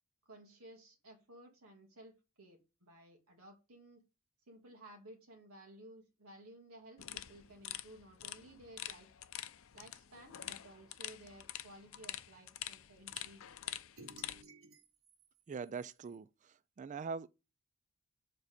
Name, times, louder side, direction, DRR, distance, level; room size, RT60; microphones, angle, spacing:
voice 1, 0.3-4.0 4.5-9.1 9.7-13.7, right 1 dB, 90° right, 2.1 m, -56 dB
sound 1, 7.0-14.4, left 13 dB, 70° left, 0.5 m, -46 dB
sound 2, 13.1-13.3 14.0-16.2, right 3 dB, 65° right, 1.3 m, -57 dB
voice 2, 15.5-17.3, right 5 dB, 35° right, 0.3 m, -43 dB
7.3 x 4.0 x 5.0 m
head